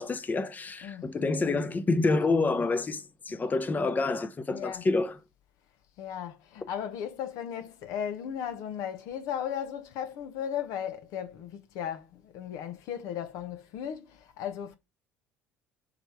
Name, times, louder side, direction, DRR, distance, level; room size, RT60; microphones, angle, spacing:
voice 1, 0.0-5.2, left 3 dB, 25° left, 0.8 m, -28 dB
voice 2, 4.5-4.9 6.0-14.8, left 9 dB, 60° left, 0.8 m, -36 dB
7.7 x 3.3 x 4.7 m
figure-of-eight pair, 60°, 7 cm